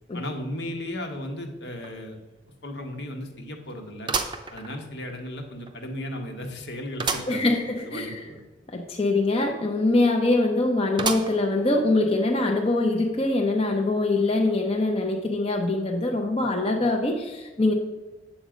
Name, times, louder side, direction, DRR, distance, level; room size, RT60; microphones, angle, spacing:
voice 1, 0.1-2.2 2.6-4.1 4.5-8.4, left 1 dB, 70° left, 3 dB, 1.4 m, -35 dB
sound 1, 1.8-1.9 2.4-2.5 4.1-5.2 5.7-5.8 7.0-7.4 7.8-7.9 8.1-8.2 11.0-11.6 12.2-12.3 13.3-13.4, right 4 dB, 25° right, 0.7 m, -30 dB
voice 2, 7.3-8.1 8.7-17.7, left 2 dB, 35° left, 1 dB, 0.8 m, -23 dB
8.6 x 7.4 x 5.1 m, 1.2 s
head